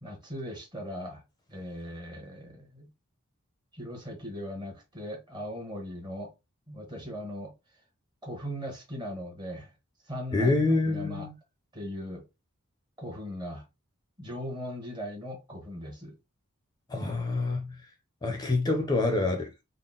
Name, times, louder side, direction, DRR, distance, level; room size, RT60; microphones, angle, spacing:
voice 1, 0.0-1.2 1.5-2.9 3.7-6.3 6.7-7.5 8.2-9.7 10.0-10.5 10.9-11.3 11.7-12.3 13.0-13.6 14.2-16.2, equal, 20° right, 1.1 m, -39 dB
voice 2, 10.3-11.3 16.9-17.8 18.2-19.6, left 2 dB, 20° left, 0.5 m, -27 dB
3.8 x 2.0 x 3.7 m
head